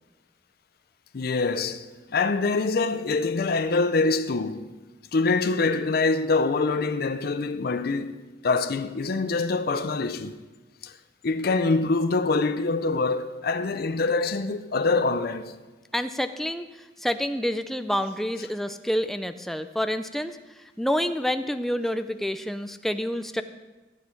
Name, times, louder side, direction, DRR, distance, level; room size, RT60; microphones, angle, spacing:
voice 1, 1.1-4.7 5.1-8.2 8.4-10.4 10.8-10.9 11.2-15.5, left 3 dB, 55° left, 0.5 m, -25 dB
voice 2, 15.9-16.7 17.0-20.4 20.8-23.4, equal, ahead, 0.4 m, -28 dB
14.5 x 8.2 x 4.5 m
head